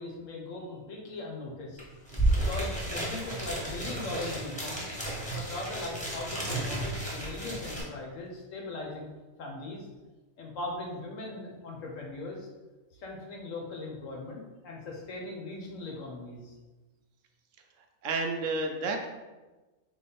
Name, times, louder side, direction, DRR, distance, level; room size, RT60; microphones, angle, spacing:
voice 1, 0.0-1.8 2.3-4.9 5.3-9.1 9.4-9.9 10.4-12.5 13.0-16.5, left 2 dB, 70° left, -1 dB, 1.2 m, -39 dB
sound 1, 1.8-7.8, right 1 dB, 5° left, 1.0 m, -32 dB
voice 2, 18.0-19.1, right 3 dB, 70° right, 3 dB, 0.9 m, -30 dB
3.9 x 3.0 x 4.2 m, 1.2 s
omnidirectional pair, 1.4 m